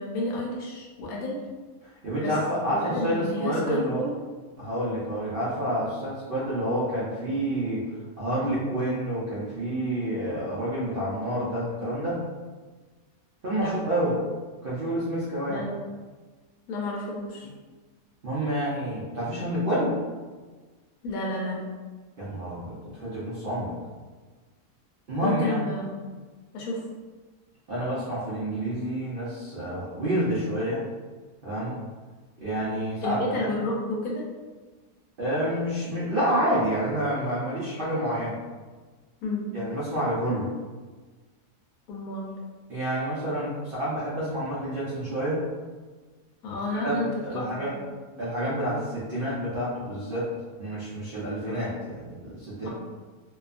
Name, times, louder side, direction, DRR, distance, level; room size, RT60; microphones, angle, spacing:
voice 1, 0.0-1.4 2.2-2.4 2.7-4.1 4.6-4.7 13.5-13.8 15.5-15.8 16.7-17.5 21.0-21.6 25.2-26.0 26.5-26.8 33.0-34.2 39.2-39.5 41.9-42.3 46.4-48.0 51.4-51.6 52.6-52.7, left 2 dB, 75° left, -2 dB, 1.0 m, -31 dB
voice 2, 2.0-4.0 4.6-7.8 8.2-12.3 13.4-14.2 14.6-15.7 18.2-20.0 22.2-23.7 25.1-25.7 27.7-30.8 31.4-31.8 32.4-33.5 35.2-38.4 39.5-40.5 42.7-45.4 46.8-47.0 47.2-47.7 48.2-50.3 50.6-52.7, right 1 dB, 65° right, -8 dB, 0.5 m, -28 dB
2.7 x 2.3 x 2.4 m, 1.3 s
omnidirectional pair, 1.7 m